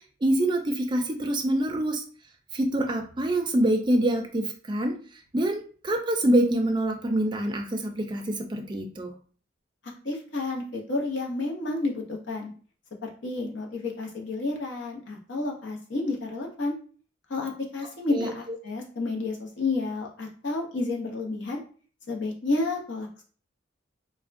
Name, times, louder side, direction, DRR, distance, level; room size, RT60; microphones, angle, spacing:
voice 1, 0.2-2.0 2.5-4.9 5.3-9.1 18.1-18.3, right 1 dB, 25° right, 3 dB, 0.4 m, -25 dB
voice 2, 9.8-12.5 13.0-16.7 17.3-21.6 22.1-23.2, left 3 dB, 65° left, 0 dB, 0.7 m, -30 dB
3.4 x 2.1 x 2.5 m, 0.42 s
head